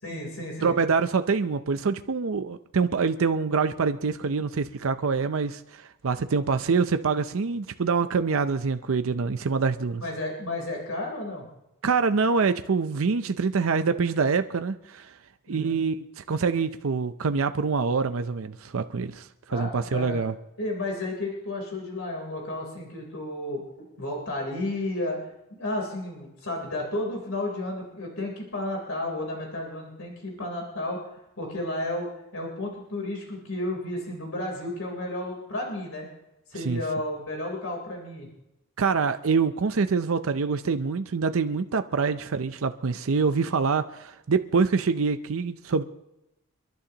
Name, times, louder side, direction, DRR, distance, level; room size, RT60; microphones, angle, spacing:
voice 1, 0.0-0.8 10.0-11.5 15.5-15.8 19.5-20.2 20.6-23.6 24.0-31.0 31.4-36.1 36.5-38.3 42.1-42.3, left 1 dB, 75° left, 0 dB, 3.6 m, -32 dB
voice 2, 0.6-10.0 11.8-15.1 15.5-20.3 36.6-36.8 38.8-45.8, right 5 dB, 75° right, 9 dB, 0.5 m, -25 dB
29.5 x 11.5 x 2.9 m, 0.90 s
head